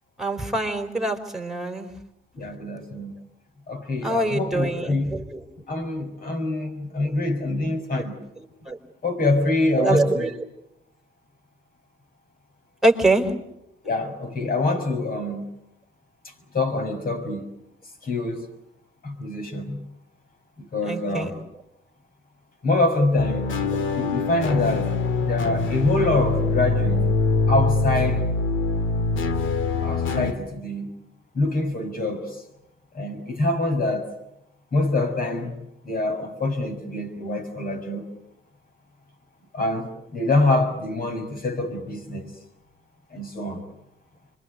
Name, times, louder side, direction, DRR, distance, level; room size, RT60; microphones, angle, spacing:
voice 1, 0.2-1.9 4.0-5.4 7.0-7.1 7.9-8.1 8.4-8.8 9.8-10.3 12.8-13.3 20.8-21.3, right 2 dB, ahead, 4.4 m, -24 dB
voice 2, 2.3-3.1 3.7-5.1 5.7-8.2 9.0-10.3 13.8-15.5 16.5-17.5 18.0-18.5 19.0-19.8 20.6-21.4 22.6-23.5 24.0-24.9 25.2-27.1 27.5-28.3 29.8-30.9 31.3-32.4 32.9-34.2 34.7-35.5 35.8-38.1 39.5-42.3 43.1-43.6, left 2 dB, 45° left, 6.4 m, -25 dB
sound 1, 23.2-30.3, left 3 dB, 80° left, 2.3 m, -24 dB
26.5 x 23.5 x 8.2 m
cardioid pair, 90°, 20 cm